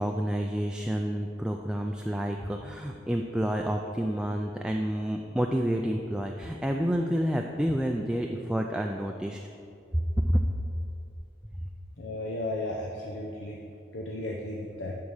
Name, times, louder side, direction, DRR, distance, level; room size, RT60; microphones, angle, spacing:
voice 1, 0.0-9.4 10.2-10.4, equal, 5° right, 2 dB, 0.3 m, -29 dB
voice 2, 12.0-13.6 13.9-14.9, left 1 dB, 90° left, -1 dB, 0.8 m, -34 dB
11.5 x 4.7 x 5.5 m, 2.5 s
head